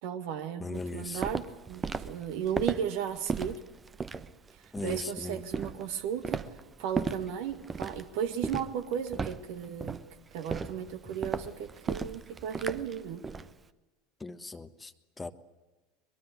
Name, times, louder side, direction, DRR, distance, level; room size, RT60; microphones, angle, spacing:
voice 1, 0.0-3.6 4.8-10.0 10.3-13.3, right 8 dB, 55° right, 9 dB, 1.9 m, -35 dB
voice 2, 0.6-1.2 4.7-5.3 14.2-14.9 15.2-15.3, left 3 dB, 15° left, 10 dB, 1.2 m, -38 dB
Walk footsteps, 0.7-13.5, right 5 dB, 20° right, 0.9 m, -36 dB
22.5 x 22.0 x 8.4 m, 1.1 s
figure-of-eight pair, 75°, 0 cm